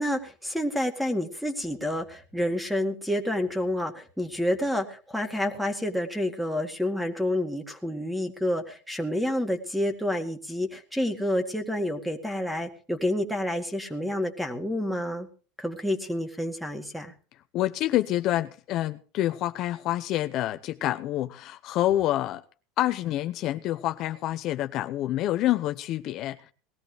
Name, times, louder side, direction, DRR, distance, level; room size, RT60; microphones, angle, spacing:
voice 1, 0.0-15.3 15.6-17.1, left 1 dB, ahead, 2.1 m, -29 dB
voice 2, 17.5-22.4 22.8-26.5, left 14 dB, 55° left, 0.7 m, -27 dB
19.5 x 13.5 x 3.4 m
supercardioid pair, 110°, 0 cm